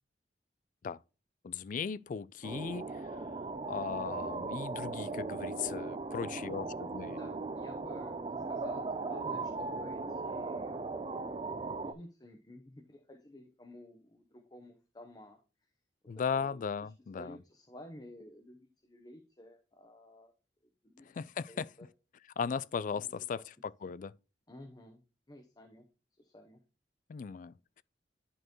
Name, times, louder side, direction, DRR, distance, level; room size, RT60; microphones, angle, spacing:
voice 1, 1.4-7.2 16.1-17.4 21.0-21.7 22.4-24.1 27.1-27.8, left 6 dB, 50° left, 0.3 m, -37 dB
sound 1, 2.4-11.9, right 3 dB, 30° right, 0.5 m, -38 dB
voice 2, 7.0-11.6 11.8-15.4 16.3-20.3 20.8-21.1 21.5-21.9 22.9-23.4 24.5-25.0 25.3-25.9 26.2-26.6, left 1 dB, 25° left, 0.9 m, -52 dB
11.0 x 4.4 x 3.0 m
head